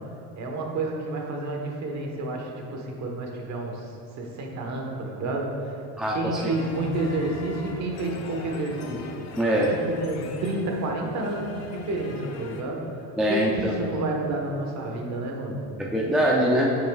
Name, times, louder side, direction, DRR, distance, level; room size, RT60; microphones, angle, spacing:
voice 1, 0.4-5.8 6.1-9.1 9.8-15.6, right 2 dB, 40° right, 1 dB, 1.3 m, -30 dB
voice 2, 6.0-6.4 9.4-9.7 13.2-13.7 15.8-16.8, equal, ahead, -3 dB, 0.4 m, -23 dB
sound 1, 6.5-12.6, left 3 dB, 35° left, 0.8 m, -41 dB
9.6 x 8.5 x 2.4 m, 2.7 s
cardioid pair, 140°, 44 cm